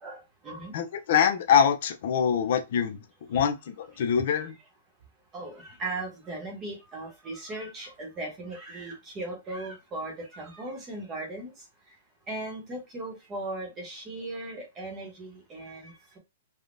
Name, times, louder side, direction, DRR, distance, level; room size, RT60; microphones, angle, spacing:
voice 1, 0.0-0.7 5.3-11.5 12.3-16.2, right 2 dB, 20° right, 0.9 m, -38 dB
voice 2, 0.7-3.0 3.3-4.5, left 8 dB, 55° left, 0.5 m, -24 dB
3.5 x 2.2 x 2.5 m
hypercardioid pair, 155°, 0 cm